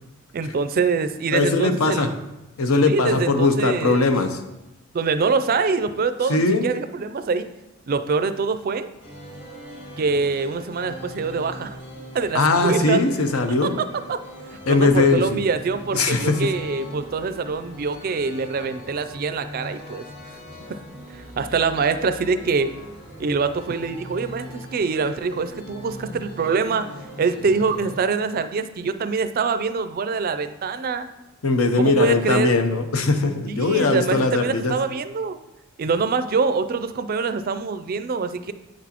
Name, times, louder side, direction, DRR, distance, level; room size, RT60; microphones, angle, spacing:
voice 1, 0.3-2.1 2.9-4.1 4.9-7.5 7.9-8.9 10.0-11.8 12.1-13.0 13.6-13.7 14.1-14.2 14.7-20.0 21.1-22.7 23.2-26.9 27.2-31.1 31.8-32.5 33.5-35.4 35.8-38.5, right 4 dB, 45° right, 11 dB, 0.4 m, -24 dB
voice 2, 1.3-2.1 2.6-4.4 6.3-6.7 12.3-13.8 14.7-15.4 15.9-16.4 31.4-34.8, left 3 dB, 85° left, 7 dB, 0.7 m, -20 dB
sound 1, 9.0-28.0, equal, 55° left, 1.7 m, -40 dB
8.7 x 6.0 x 2.9 m, 0.96 s
head